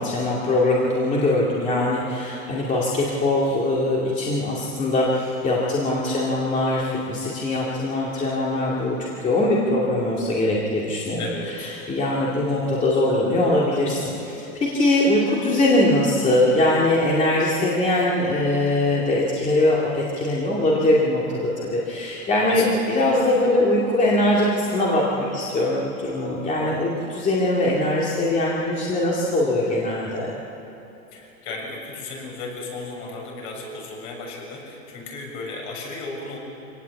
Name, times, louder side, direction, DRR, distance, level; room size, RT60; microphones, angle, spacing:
voice 1, 0.0-11.2 11.9-30.3, left 1 dB, 15° left, -4 dB, 2.4 m, -22 dB
voice 2, 11.2-11.7 22.5-23.1 31.1-36.4, left 3 dB, 50° left, -1 dB, 7.1 m, -35 dB
24.5 x 18.0 x 8.4 m, 2.9 s
supercardioid pair, 155°, 44 cm